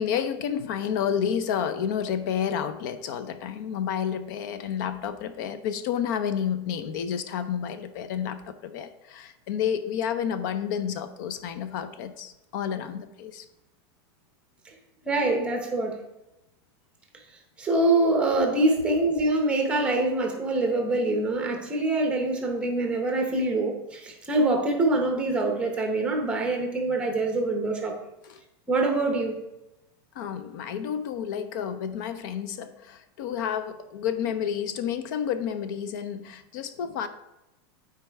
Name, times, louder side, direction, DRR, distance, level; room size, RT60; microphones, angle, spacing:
voice 1, 0.0-13.5 28.2-28.4 30.1-37.1, left 8 dB, 50° left, 11 dB, 0.6 m, -30 dB
voice 2, 15.0-16.0 17.6-27.9 28.7-29.4, right 2 dB, 10° right, 2 dB, 0.8 m, -24 dB
9.2 x 4.6 x 3.4 m, 0.94 s
supercardioid pair, 175°, 14 cm